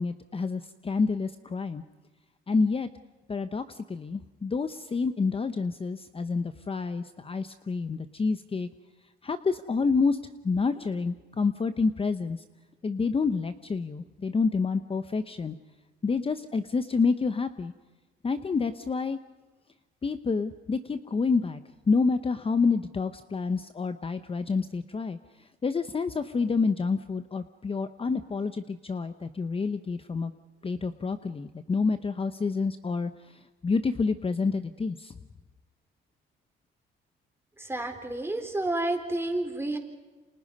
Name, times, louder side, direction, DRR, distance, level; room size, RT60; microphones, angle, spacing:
voice 1, 0.0-1.8 2.5-2.9 3.3-8.7 9.2-10.2 10.4-12.4 12.8-15.6 16.0-17.7 18.2-19.2 20.0-21.6 21.9-30.3 30.6-35.2, left 4 dB, 30° left, 10 dB, 0.9 m, -28 dB
voice 2, 37.6-39.8, right 2 dB, 10° right, 4 dB, 4.3 m, -30 dB
29.5 x 27.0 x 5.4 m, 1.3 s
cardioid pair, 90°, 20 cm